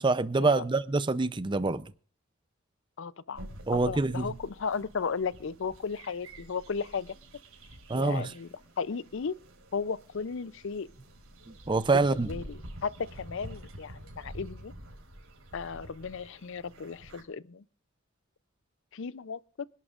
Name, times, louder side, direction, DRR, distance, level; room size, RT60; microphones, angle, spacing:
voice 1, 0.0-1.9 3.7-4.3 7.9-8.3 11.7-12.3, right 3 dB, 20° right, 0.5 m, -26 dB
voice 2, 3.0-7.2 7.9-8.5 8.8-9.4 9.7-10.9 12.1-14.7 15.5-17.6 18.9-19.7, left 5 dB, 60° left, 0.5 m, -35 dB
sound 1, 3.3-17.2, right 1 dB, 85° right, 5.1 m, -48 dB
26.0 x 11.5 x 2.4 m
head